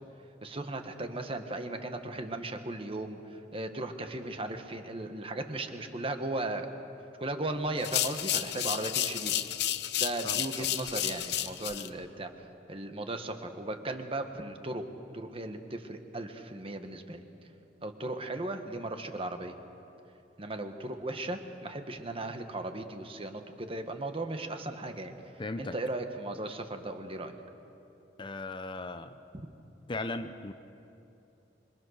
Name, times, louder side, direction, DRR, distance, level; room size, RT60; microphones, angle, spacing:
voice 1, 0.4-6.7 7.2-9.4 10.0-14.8 15.1-17.2 17.8-19.5 20.4-25.1 25.6-27.3 29.3-29.5, right 2 dB, 30° right, 6 dB, 1.4 m, -37 dB
sound 1, 7.8-11.9, left 12 dB, 65° left, 0.7 m, -31 dB
voice 2, 10.2-10.7 25.4-25.7 28.2-29.2 29.9-30.5, left 2 dB, 30° left, 9 dB, 0.6 m, -37 dB
26.5 x 23.0 x 6.5 m, 2.8 s
head